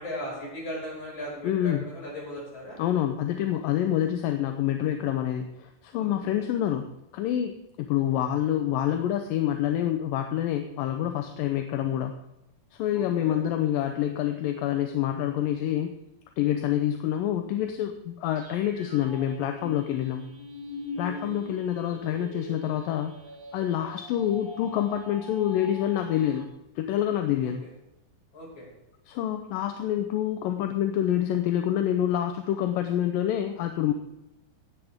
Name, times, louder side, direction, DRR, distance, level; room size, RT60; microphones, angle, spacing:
voice 1, 0.0-2.8 5.9-6.5 12.9-13.4 21.0-21.1 28.3-28.7, equal, 40° left, -4 dB, 6.6 m, -38 dB
voice 2, 1.4-1.8 2.8-6.9 7.1-12.1 12.8-15.9 16.4-20.3 21.0-23.1 23.5-26.5 26.8-27.6 29.1-33.9, left 11 dB, 75° left, 6 dB, 2.3 m, -27 dB
sound 1, 18.3-26.4, left 1 dB, 30° right, 0.5 m, -42 dB
17.0 x 10.5 x 3.6 m, 0.89 s
omnidirectional pair, 4.4 m